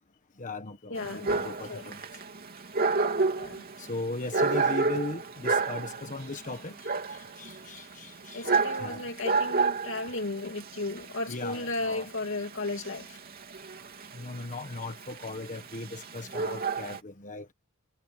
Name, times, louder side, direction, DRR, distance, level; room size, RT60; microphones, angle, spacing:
voice 1, 0.4-2.0 3.8-8.5 8.8-9.0 11.3-12.1 14.1-17.5, left 3 dB, 35° left, 1.4 m, -38 dB
voice 2, 0.9-1.8 3.4-3.7 8.3-13.2, left 2 dB, 65° left, 2.8 m, -35 dB
Dog, 1.0-17.0, right 4 dB, 45° right, 3.1 m, -31 dB
head